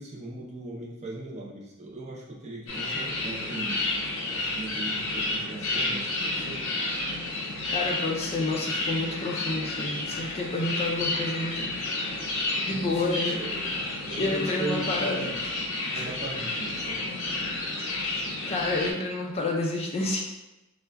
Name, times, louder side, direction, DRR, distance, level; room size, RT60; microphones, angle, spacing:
voice 1, 0.0-4.0 4.3-6.7 12.7-13.6 14.1-15.3 15.8-17.6, right 2 dB, 30° right, -3 dB, 0.6 m, -38 dB
sound 1, 2.7-18.9, left 2 dB, 65° left, 0.6 m, -31 dB
voice 2, 7.7-11.7 12.7-13.4 14.2-15.3 15.9-16.1 18.5-20.2, left 2 dB, 30° left, -1 dB, 0.3 m, -29 dB
4.4 x 2.2 x 2.2 m, 1.0 s
head